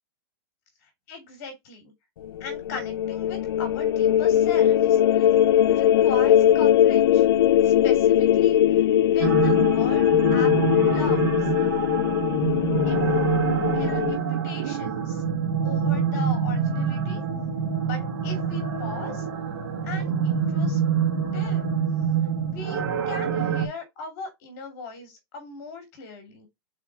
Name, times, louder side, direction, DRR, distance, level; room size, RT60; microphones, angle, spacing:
voice 1, 1.1-1.9 2.4-5.3 5.7-7.2 7.6-10.5 10.9-11.3 11.6-11.7 12.8-13.3 13.7-15.2 15.6-17.2 17.8-19.2 19.8-20.8 21.3-21.6 22.4-26.5, left 4 dB, 40° left, 2.9 m, -39 dB
sound 1, 2.2-14.2, left 11 dB, 75° left, 0.6 m, -20 dB
sound 2, 9.2-23.7, right 6 dB, 85° right, 2.4 m, -26 dB
5.6 x 4.3 x 4.7 m
supercardioid pair, 170°, 13 cm